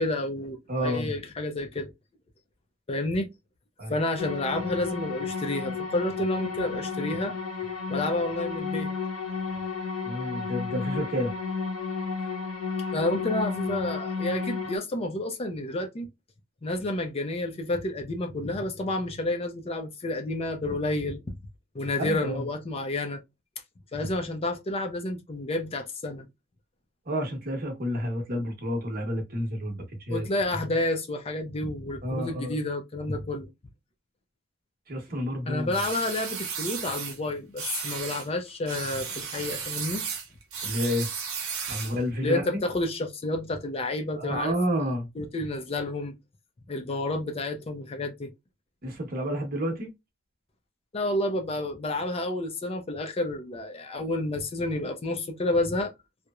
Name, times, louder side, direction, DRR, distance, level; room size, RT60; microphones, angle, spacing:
voice 1, 0.0-1.9 2.9-3.3 3.9-7.3 7.9-8.9 12.9-16.1 16.6-21.4 21.7-23.2 23.9-26.3 30.1-33.5 35.5-40.1 42.2-44.5 45.2-46.2 46.7-48.3 50.9-55.9, left 2 dB, 30° left, 0.4 m, -30 dB
voice 2, 0.7-1.1 3.8-4.0 10.0-11.3 22.0-22.5 27.1-30.3 32.0-32.6 34.9-35.8 40.6-41.1 41.7-42.6 44.2-45.1 48.8-49.9, equal, 45° right, 0.9 m, -30 dB
sound 1, 4.2-14.8, left 5 dB, 85° left, 0.8 m, -32 dB
sound 2, 35.7-37.2 37.6-38.3 38.7-42.0, right 6 dB, 75° right, 0.8 m, -34 dB
2.9 x 2.0 x 2.3 m
head